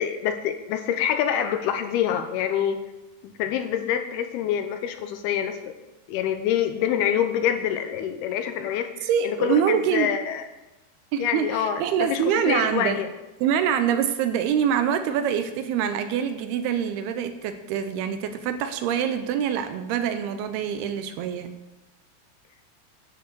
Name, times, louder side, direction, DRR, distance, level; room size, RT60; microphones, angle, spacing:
voice 1, 0.0-2.8 3.2-5.7 6.1-10.4 11.2-13.1, left 9 dB, 80° left, 8 dB, 2.6 m, -26 dB
voice 2, 9.0-10.1 11.1-13.0 13.4-21.5, right 8 dB, 80° right, 9 dB, 2.6 m, -25 dB
10.5 x 6.5 x 8.1 m, 1.0 s
omnidirectional pair, 4.7 m